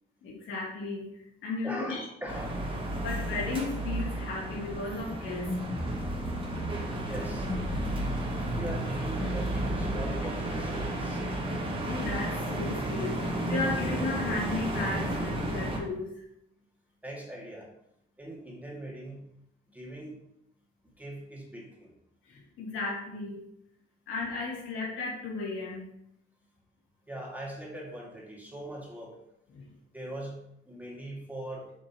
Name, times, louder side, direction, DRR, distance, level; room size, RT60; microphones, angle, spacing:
voice 1, 0.2-2.0 2.9-5.7 11.8-16.2 22.2-23.4 24.1-25.9 29.5-29.8, left 3 dB, 85° left, -5 dB, 2.7 m, -35 dB
voice 2, 1.6-2.6 7.0-7.5 8.5-11.2 17.0-17.7 18.2-19.3 19.7-20.2 21.0-21.9 27.1-29.2 29.9-31.7, right 1 dB, 10° right, -3 dB, 2.1 m, -40 dB
sound 1, 2.3-15.8, right 1 dB, 25° right, 1.6 m, -32 dB
sound 2, 5.3-14.1, left 1 dB, 10° left, 0.9 m, -40 dB
7.5 x 5.4 x 3.0 m, 0.79 s
cardioid pair, 90°, 20 cm